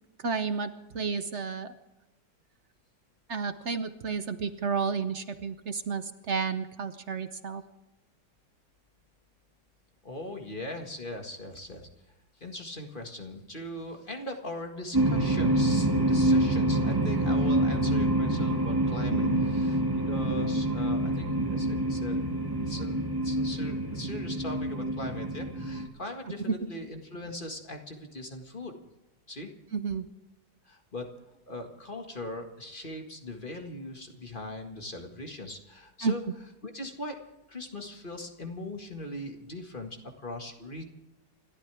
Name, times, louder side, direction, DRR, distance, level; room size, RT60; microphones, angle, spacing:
voice 1, 0.2-1.7 3.3-7.6 19.1-19.5 26.4-26.6 29.7-30.1 36.0-36.1, right 5 dB, 50° right, 10 dB, 0.9 m, -31 dB
voice 2, 10.0-11.9 12.4-19.8 20.1-22.3 22.6-28.7 29.3-29.5 30.7-31.1 31.5-36.2 36.6-37.2 37.5-40.8, left 1 dB, 30° left, 3 dB, 1.9 m, -40 dB
sound 1, 14.9-25.9, right 1 dB, 10° right, 2.1 m, -26 dB
29.0 x 13.0 x 3.5 m, 1.0 s
omnidirectional pair, 2.0 m